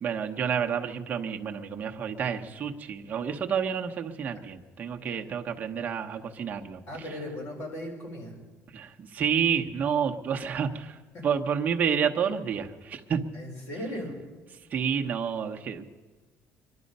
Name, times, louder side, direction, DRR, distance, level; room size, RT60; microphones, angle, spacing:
voice 1, 0.0-7.2 8.7-11.0 11.2-13.2 14.7-15.8, right 7 dB, 30° right, 3 dB, 1.0 m, -29 dB
voice 2, 6.9-8.3 13.3-14.1, left 1 dB, 60° left, 0 dB, 4.6 m, -37 dB
24.0 x 11.5 x 5.4 m, 1.3 s
cardioid pair, 170°, 5 cm